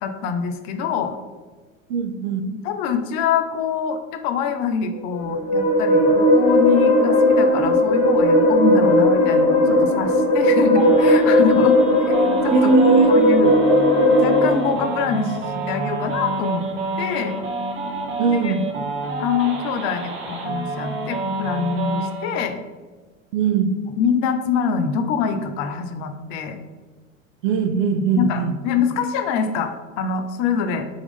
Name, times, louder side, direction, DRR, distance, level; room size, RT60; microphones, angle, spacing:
voice 1, 0.0-1.1 2.5-11.8 12.0-12.6 13.1-13.6 14.2-16.6 17.0-17.3 18.3-18.5 19.2-22.6 24.0-26.6 28.2-30.8, left 6 dB, 50° left, 7 dB, 0.5 m, -24 dB
voice 2, 1.9-2.4 11.9-12.0 12.5-13.1 18.2-18.7 23.3-23.7 27.4-28.5, right 5 dB, 65° right, 8 dB, 0.5 m, -19 dB
sound 1, 5.1-14.5, left 1 dB, 15° left, 1.1 m, -16 dB
sound 2, 10.8-22.4, right 2 dB, 30° right, 0.7 m, -29 dB
3.6 x 3.0 x 3.5 m, 1.3 s
hypercardioid pair, 85°, 40 cm